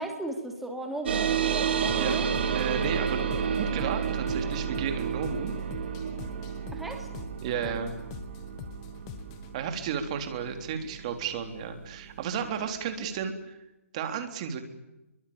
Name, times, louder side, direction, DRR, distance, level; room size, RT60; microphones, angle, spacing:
voice 1, 0.0-2.3 6.7-7.1 7.6-7.8, right 1 dB, ahead, 2 dB, 3.2 m, -37 dB
sound 1, 1.1-12.0, right 7 dB, 45° right, 3.1 m, -31 dB
sound 2, 1.9-9.5, left 7 dB, 20° left, 1.9 m, -44 dB
voice 2, 2.5-3.2 3.6-5.5 7.4-8.0 9.5-13.6 13.9-14.6, right 7 dB, 25° right, 6 dB, 3.6 m, -33 dB
28.5 x 23.5 x 8.9 m, 0.96 s
hypercardioid pair, 170°, 8 cm